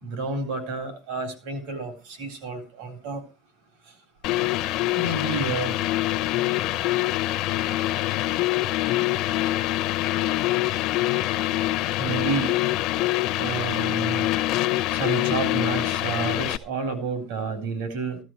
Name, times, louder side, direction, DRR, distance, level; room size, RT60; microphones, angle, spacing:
voice 1, 0.0-3.3 4.9-5.8 12.0-12.5 13.4-14.3 14.9-18.2, right 4 dB, 85° right, 6 dB, 3.7 m, -30 dB
sound 1, 4.2-16.6, left 16 dB, 55° left, 0.6 m, -25 dB
15.5 x 12.5 x 3.1 m, 0.28 s
cardioid pair, 165°, 0 cm